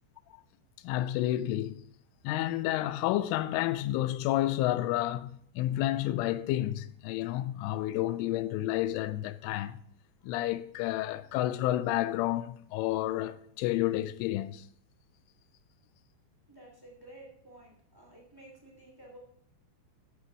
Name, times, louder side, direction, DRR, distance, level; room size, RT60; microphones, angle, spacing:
voice 1, 0.8-1.8 2.2-9.8 10.2-14.6, left 14 dB, 85° left, 3.0 m, -30 dB
voice 2, 16.5-19.2, right 1 dB, 10° right, 1.3 m, -53 dB
13.0 x 8.1 x 4.7 m
omnidirectional pair, 5.8 m